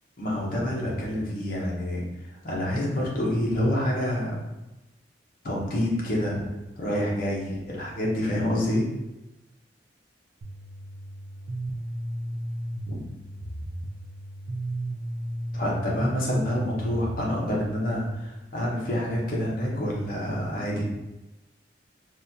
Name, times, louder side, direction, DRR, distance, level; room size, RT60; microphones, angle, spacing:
voice 1, 0.2-2.0 2.4-4.3 5.4-6.4 6.7-8.8 12.9-13.0 15.5-20.8, left 1 dB, 50° left, -4 dB, 0.7 m, -27 dB
sound 1, 10.4-17.3, right 1 dB, 60° right, 0.4 m, -34 dB
3.9 x 2.2 x 2.7 m, 1.0 s
head